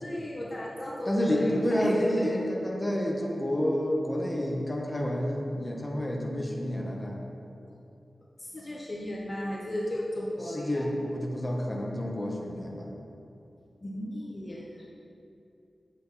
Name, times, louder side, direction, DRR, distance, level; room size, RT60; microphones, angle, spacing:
voice 1, 0.0-2.4 8.4-10.8 12.8-12.9 13.8-14.9, left 1 dB, 35° left, -4 dB, 1.2 m, -34 dB
voice 2, 1.1-7.2 10.5-12.9, equal, 15° left, -2 dB, 1.5 m, -29 dB
9.5 x 8.0 x 4.2 m, 2.7 s
wide cardioid pair, 65°, 0 cm